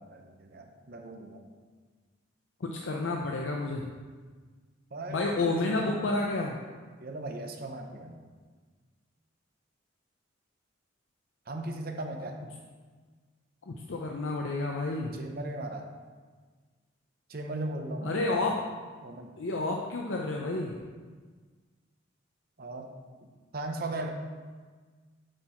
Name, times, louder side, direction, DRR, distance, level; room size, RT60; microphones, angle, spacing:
voice 1, 0.0-1.5 4.9-6.1 7.0-8.2 11.5-12.4 15.1-15.9 17.3-18.6 19.0-19.4 22.6-22.9 23.2-24.1, right 2 dB, 50° right, 4 dB, 0.7 m, -38 dB
voice 2, 2.6-3.9 5.1-6.6 13.7-15.1 18.0-18.7 19.4-20.7, left 2 dB, 75° left, 0 dB, 0.6 m, -30 dB
7.6 x 4.4 x 4.4 m, 1.5 s
head